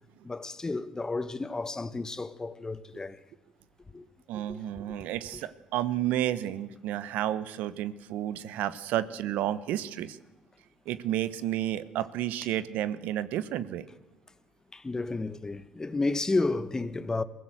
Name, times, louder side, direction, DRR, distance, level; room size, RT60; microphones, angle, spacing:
voice 1, 0.2-3.2 3.9-4.1 4.5-4.6 14.7-17.2, left 3 dB, 20° left, 1.2 m, -31 dB
voice 2, 4.3-10.2 10.9-13.9, right 12 dB, 75° right, 1.0 m, -31 dB
22.5 x 16.0 x 7.6 m
supercardioid pair, 65°, 3 cm